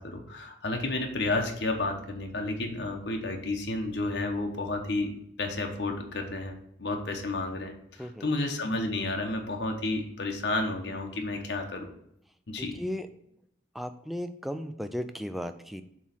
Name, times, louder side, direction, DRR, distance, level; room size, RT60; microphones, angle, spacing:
voice 1, 0.0-11.9 12.5-12.8, left 2 dB, 75° left, 3 dB, 0.9 m, -31 dB
voice 2, 12.6-13.1 13.7-15.8, equal, ahead, 9 dB, 0.3 m, -35 dB
7.2 x 3.1 x 5.7 m, 0.75 s
head